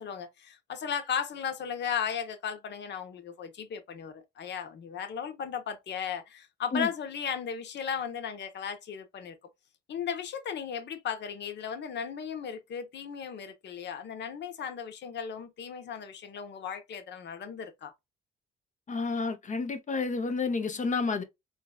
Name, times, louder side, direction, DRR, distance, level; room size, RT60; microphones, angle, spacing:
voice 1, 0.0-9.4 9.9-17.9, left 7 dB, 60° left, 1.0 m, -36 dB
voice 2, 18.9-21.2, left 4 dB, 40° left, 0.8 m, -30 dB
3.9 x 2.4 x 2.3 m
cardioid pair, 90°, 20 cm